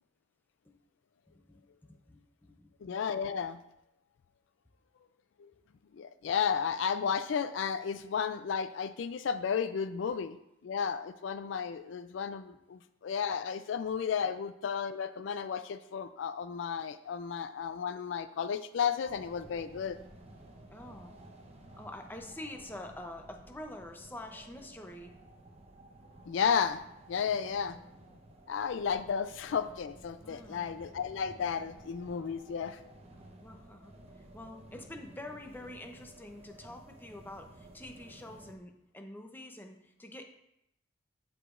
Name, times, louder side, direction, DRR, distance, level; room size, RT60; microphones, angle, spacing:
voice 1, 1.9-2.7 14.2-14.3 20.7-21.1 21.8-25.1 30.2-30.7 33.4-40.3, left 1 dB, 10° left, 4 dB, 0.6 m, -46 dB
voice 2, 2.8-3.6 5.4-5.5 5.9-10.4 10.6-20.0 26.3-26.8 27.1-27.8 28.5-32.9, left 7 dB, 70° left, 11 dB, 0.3 m, -33 dB
sound 1, 19.1-38.6, right 1 dB, 30° right, 0.9 m, -54 dB
14.5 x 4.9 x 2.5 m, 0.81 s
head